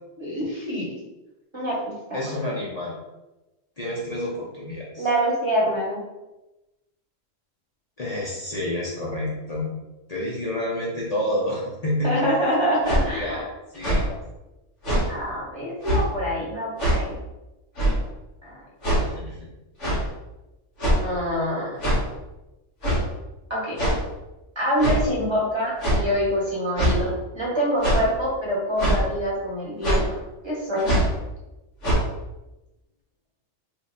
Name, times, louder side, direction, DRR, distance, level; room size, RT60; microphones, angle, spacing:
voice 1, 0.2-0.9 1.5-2.2 5.0-6.0 12.0-13.4 15.1-17.1 18.4-18.6 21.0-21.7 23.5-23.8 24.6-30.1 30.4-30.9, equal, 25° right, -5 dB, 0.9 m, -25 dB
voice 2, 2.1-2.9 3.8-5.1 8.0-9.7 10.1-12.3 13.1-14.1 19.0-19.5, left 1 dB, 45° left, -4 dB, 0.5 m, -29 dB
sound 1, 12.8-13.0 13.7-14.0 14.8-15.1 15.8-16.0 16.8-17.0 17.8-18.0 18.8-19.0 19.8-20.0 20.8-21.1 21.8-22.0 22.8-23.0 23.8-24.0 24.8-25.0 25.8-26.0 26.8-27.0 27.8-28.1 28.8-29.0 29.8-30.0 30.8-31.1 31.8-32.0, right 1 dB, 65° left, 1.5 m, -21 dB
3.3 x 2.3 x 4.0 m, 1.0 s
omnidirectional pair, 1.4 m